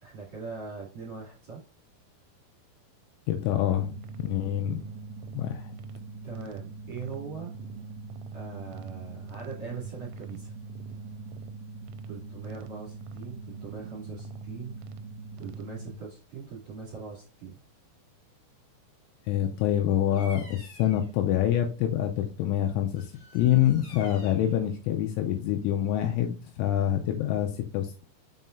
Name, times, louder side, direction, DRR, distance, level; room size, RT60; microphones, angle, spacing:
voice 1, 0.0-1.6 6.2-7.5 8.3-10.5 12.0-14.8 15.4-17.6, right 5 dB, 35° right, -4 dB, 2.8 m, -41 dB
voice 2, 3.3-4.8 5.3-5.7 19.3-23.1 23.3-28.1, left 11 dB, 80° left, 4 dB, 2.9 m, -26 dB
sound 1, 3.8-16.0, right 4 dB, 85° right, 3.2 m, -42 dB
Bird vocalization bird call bird song, 20.1-21.1 22.9-24.6, left 1 dB, 45° left, 1.7 m, -49 dB
7.3 x 5.5 x 2.6 m, 0.39 s
omnidirectional pair, 5.9 m